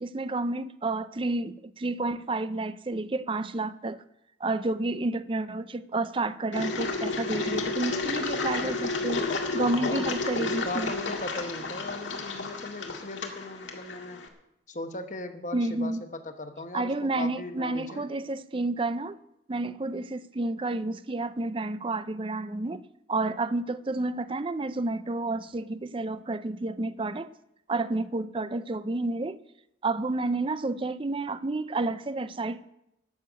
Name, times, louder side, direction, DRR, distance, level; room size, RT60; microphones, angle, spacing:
voice 1, 0.0-4.0 4.4-9.2 9.5-10.9 15.5-16.0 16.7-19.2 19.5-22.8 23.1-27.3 27.7-29.4 29.8-32.6, right 2 dB, 30° right, 0.5 m, -30 dB
Engine, 6.5-14.3, left 3 dB, 85° left, 2.0 m, -31 dB
voice 2, 9.7-10.1 10.4-14.2 14.7-18.1, left 2 dB, 40° left, 1.1 m, -38 dB
13.5 x 6.7 x 9.1 m
head